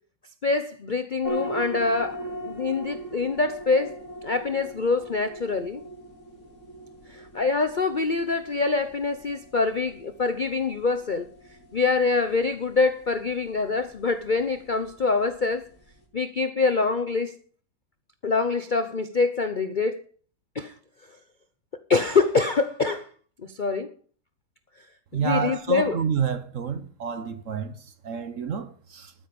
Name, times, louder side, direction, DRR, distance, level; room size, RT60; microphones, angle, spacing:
voice 1, 0.4-4.0 4.2-5.8 7.1-11.3 11.7-15.7 16.1-17.4 18.2-20.0 20.5-20.7 21.9-23.1 23.6-23.9 25.1-26.0, left 4 dB, 60° left, 0.5 m, -25 dB
sound 1, 1.2-16.0, right 1 dB, 40° left, 2.9 m, -40 dB
voice 2, 25.1-29.1, right 7 dB, 50° right, 1.1 m, -29 dB
13.0 x 9.7 x 5.3 m
omnidirectional pair, 2.0 m